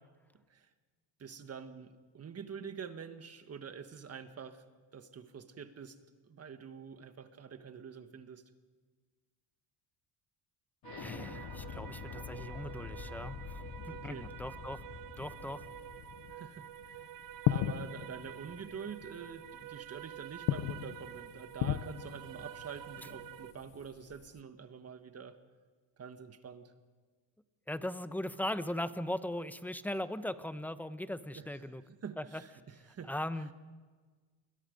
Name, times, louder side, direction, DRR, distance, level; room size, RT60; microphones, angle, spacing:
voice 1, 1.2-4.6 4.9-6.0 6.2-8.5 12.5-12.7 13.9-14.3 16.3-16.9 17.5-25.4 26.0-26.7 31.3-31.4 32.0-33.1, right 7 dB, 35° right, 9 dB, 1.6 m, -46 dB
Explosion, 10.8-16.3, left 6 dB, 55° left, 2.4 m, -46 dB
sound 1, 10.8-23.5, right 12 dB, 50° right, 0.8 m, -49 dB
voice 2, 11.0-14.8 15.2-15.6 27.7-31.8 32.2-32.4 33.1-33.5, left 1 dB, 5° left, 12 dB, 0.9 m, -39 dB
sound 2, 15.2-24.4, left 15 dB, 70° left, 0.9 m, -39 dB
29.0 x 22.0 x 5.3 m, 1.5 s
cardioid pair, 120°, 44 cm